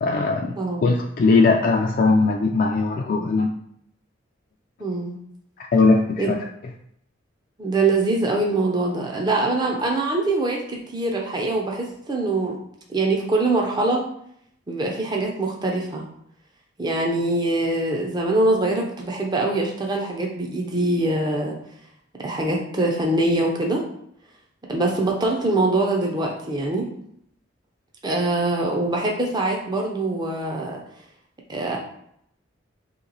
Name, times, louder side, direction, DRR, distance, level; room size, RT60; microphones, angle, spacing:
voice 1, 0.0-0.5 0.8-3.5 5.7-6.4, left 3 dB, 45° left, 0 dB, 0.3 m, -19 dB
voice 2, 0.6-0.9 4.8-5.2 6.2-6.3 7.6-12.6 12.9-14.0 14.7-16.0 16.8-21.6 22.2-23.8 24.7-26.9 28.0-30.8 31.5-31.8, right 2 dB, 20° right, 0 dB, 0.5 m, -23 dB
3.2 x 2.9 x 3.9 m, 0.72 s
head